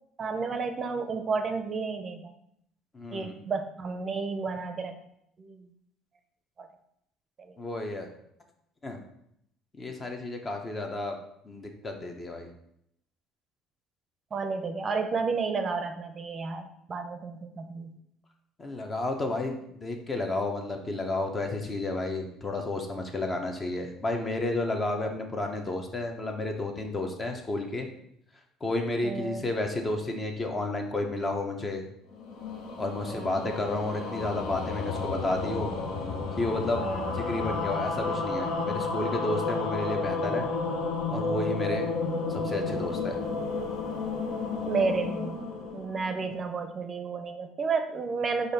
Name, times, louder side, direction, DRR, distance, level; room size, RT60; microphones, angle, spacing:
voice 1, 0.2-2.3 3.1-5.0 5.4-5.7 6.6-6.7 7.4-7.6 14.3-16.6 16.9-18.0 29.0-29.4 33.0-33.5 36.8-37.2 44.6-45.4 45.7-48.5, right 4 dB, 40° right, 7 dB, 0.5 m, -31 dB
voice 2, 2.9-3.3 7.6-8.1 8.8-9.0 9.8-11.2 11.4-12.5 18.6-27.9 28.6-31.8 32.8-35.7 36.4-36.8 37.1-40.5 41.1-41.9 42.3-43.2, left 2 dB, 30° left, 4 dB, 0.9 m, -31 dB
sound 1, 32.1-46.6, left 4 dB, 70° left, 0.7 m, -32 dB
4.8 x 2.6 x 4.2 m, 0.74 s
hypercardioid pair, 70°, 0 cm